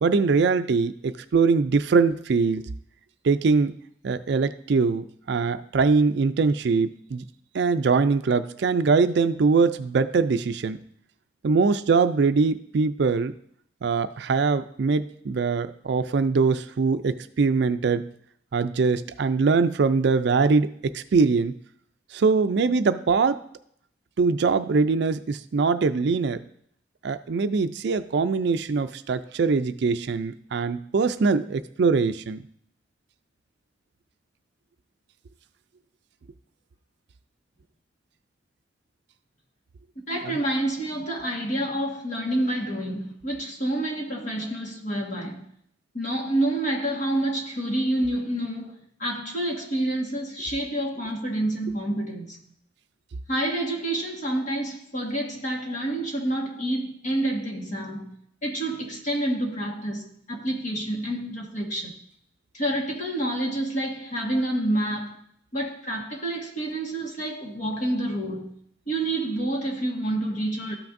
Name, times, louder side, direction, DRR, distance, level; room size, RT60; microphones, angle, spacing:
voice 1, 0.0-2.7 3.2-3.7 4.0-7.2 7.5-10.8 11.4-13.3 13.8-18.1 18.5-21.6 22.1-23.4 24.2-26.4 27.0-32.4 40.2-40.3, right 4 dB, 60° right, 0.4 m, -22 dB
voice 2, 40.1-45.5 45.9-48.7 49.0-52.4 53.3-58.1 58.4-62.0 62.5-65.2 65.5-68.5 68.9-70.7, right 1 dB, 40° left, 1.7 m, -28 dB
13.0 x 5.8 x 2.6 m
head